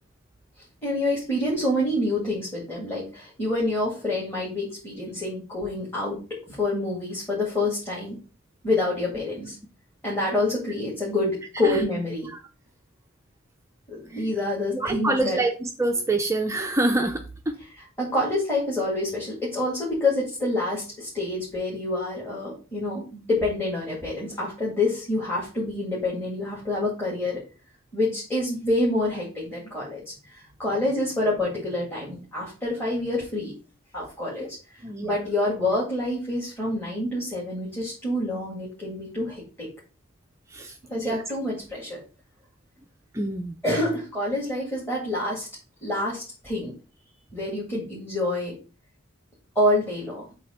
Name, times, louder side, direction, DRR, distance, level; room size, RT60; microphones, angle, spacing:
voice 1, 0.8-8.2 8.6-9.6 10.0-12.3 13.9-15.4 18.0-27.4 27.9-33.5 33.9-39.7 40.9-42.0 43.6-45.5 45.8-46.7 47.3-48.6 49.6-50.2, left 1 dB, 10° left, -6 dB, 2.0 m, -27 dB
voice 2, 14.7-17.5 34.4-34.5 34.8-35.1 40.5-41.2 43.1-43.5, right 2 dB, 15° right, 5 dB, 0.4 m, -26 dB
7.6 x 2.9 x 5.4 m, 0.35 s
head